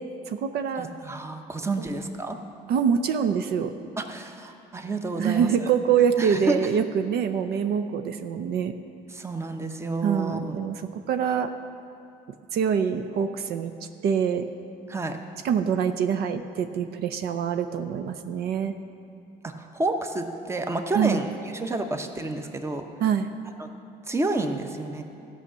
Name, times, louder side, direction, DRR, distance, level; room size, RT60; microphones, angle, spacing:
voice 1, 0.3-0.9 1.8-1.9 2.7-3.7 5.2-8.7 10.0-11.5 12.5-13.7 14.0-14.5 15.4-18.7 20.9-21.3 23.0-23.3, right 7 dB, 70° right, 8 dB, 0.6 m, -25 dB
voice 2, 0.8-2.4 4.0-5.5 6.2-6.6 9.1-10.5 14.9-15.2 19.4-21.3 21.5-22.9 24.1-25.0, right 2 dB, 15° right, 6 dB, 0.8 m, -30 dB
14.5 x 5.7 x 7.3 m, 2.6 s
cardioid pair, 110°, 17 cm